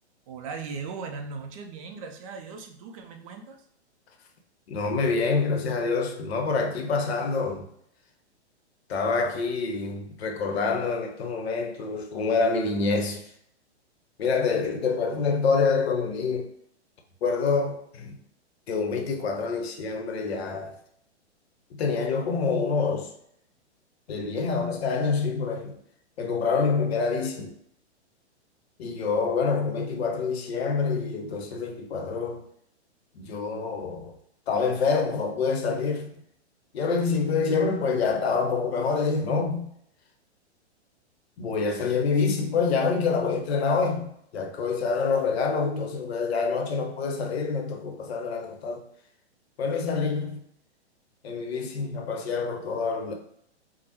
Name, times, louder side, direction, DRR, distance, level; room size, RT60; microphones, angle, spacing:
voice 1, 0.3-3.6, right 4 dB, 30° right, 0.4 m, -38 dB
voice 2, 4.7-7.7 8.9-13.2 14.2-16.5 17.2-18.2 18.7-20.8 21.7-23.1 24.1-25.8 26.2-27.5 28.8-32.4 33.2-34.2 34.5-36.1 36.7-39.7 41.4-48.8 49.6-50.4 51.2-53.1, left 4 dB, 65° left, 0.7 m, -26 dB
3.3 x 2.0 x 2.8 m
hypercardioid pair, 125°, 34 cm